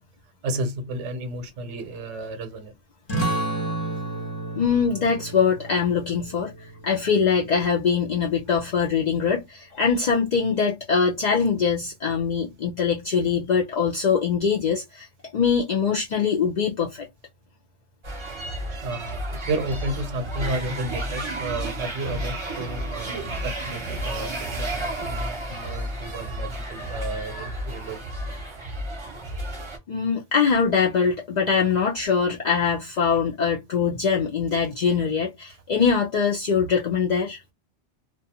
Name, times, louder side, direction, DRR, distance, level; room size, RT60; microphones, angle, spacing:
voice 1, 0.4-2.7 18.8-28.0 33.1-33.2, right 2 dB, 75° right, 0.9 m, -32 dB
sound 1, 3.1-8.3, right 2 dB, 25° left, 0.8 m, -32 dB
voice 2, 4.6-15.1 15.3-17.1 29.9-37.4, left 6 dB, 55° left, 0.5 m, -23 dB
sound 2, 18.0-29.8, right 1 dB, 30° right, 0.7 m, -32 dB
2.3 x 2.2 x 2.7 m
omnidirectional pair, 1.2 m